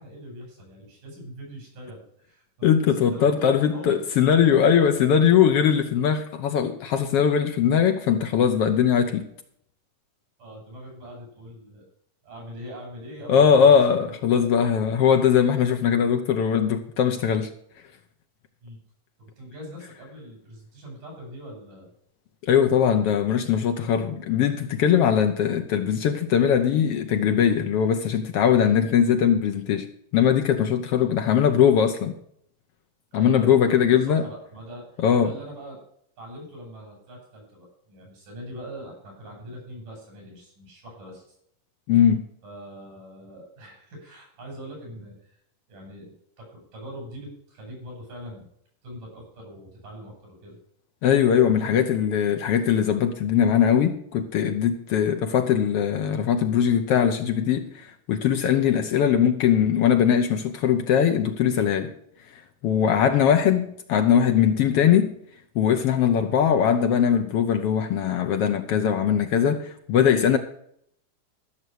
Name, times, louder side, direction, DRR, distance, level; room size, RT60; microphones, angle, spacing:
voice 1, 0.0-4.1 4.5-4.9 10.4-11.8 12.2-14.6 18.6-18.8 19.2-21.9 31.0-31.1 33.1-35.8 36.2-41.4 42.4-45.4 45.7-48.5 48.8-50.6 51.4-51.7 62.8-63.0, equal, 85° right, 8.2 m, -42 dB
voice 2, 2.6-9.2 13.3-17.5 22.4-29.9 30.1-32.2 33.1-34.3 35.0-35.3 41.9-42.2 51.0-61.9 62.6-65.2 65.5-70.4, left 8 dB, 75° left, 1.3 m, -20 dB
14.5 x 6.7 x 6.3 m
omnidirectional pair, 3.7 m